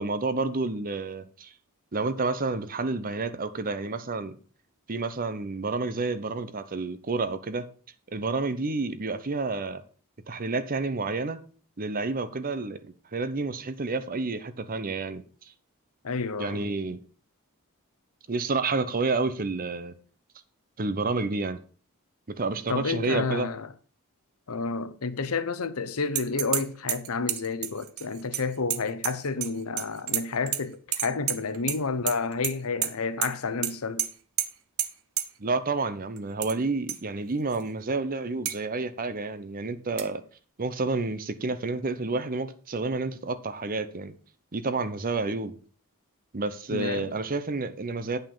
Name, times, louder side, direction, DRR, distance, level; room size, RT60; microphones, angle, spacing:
voice 1, 0.0-1.5 1.9-4.4 4.9-7.7 8.1-9.8 10.3-11.4 11.8-15.2 16.4-17.0 18.3-19.9 20.8-21.6 22.3-23.5 35.4-40.2 40.6-44.1 44.5-45.6 46.3-48.2, right 3 dB, 40° right, 0.8 m, -29 dB
voice 2, 16.0-16.7 22.7-23.7 24.5-34.1 46.7-47.2, left 4 dB, 75° left, 0.8 m, -30 dB
sound 1, 26.1-26.6 26.9-29.5 29.8-30.6 30.9-31.8 32.1-32.5 32.8-32.9 33.2-33.3 33.6-33.7 34.0-34.1 34.4-34.5 34.8-34.9 35.2-35.3 36.2-36.5 36.9-37.0 37.5-37.6 38.5-38.6 40.0-40.1, right 12 dB, 70° right, 0.8 m, -29 dB
9.0 x 5.5 x 5.6 m
head